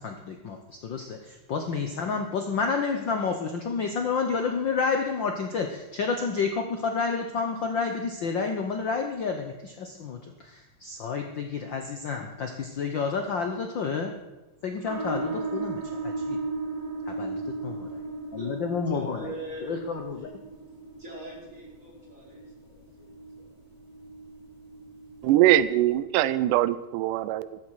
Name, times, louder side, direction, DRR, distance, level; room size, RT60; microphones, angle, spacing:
voice 1, 0.0-14.1 14.6-16.5 17.0-17.9 18.3-19.3 19.6-20.4, left 5 dB, 85° left, 5 dB, 1.0 m, -30 dB
sound 1, 14.8-26.0, right 3 dB, 10° left, 6.7 m, -37 dB
voice 2, 18.9-19.8 21.0-23.1 23.4-23.6, right 1 dB, 25° right, -3 dB, 4.6 m, -41 dB
voice 3, 25.2-27.6, right 13 dB, 90° right, 16 dB, 2.2 m, -22 dB
15.5 x 12.5 x 4.8 m, 1.1 s
omnidirectional pair, 3.6 m